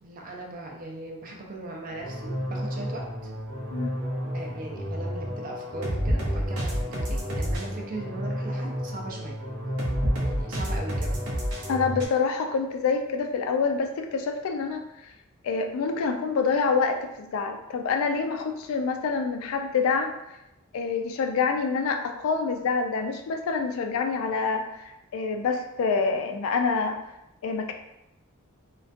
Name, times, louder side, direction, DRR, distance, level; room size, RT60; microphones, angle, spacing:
voice 1, 0.0-3.3 4.3-9.4 10.2-11.2, right 2 dB, 40° right, 0 dB, 0.4 m, -39 dB
sound 1, 1.9-12.1, equal, 90° right, 0.6 m, -30 dB
voice 2, 11.7-15.1 15.4-20.1 20.7-27.0 27.4-27.7, left 5 dB, 70° left, 5 dB, 0.3 m, -27 dB
2.4 x 2.2 x 2.5 m, 0.89 s
head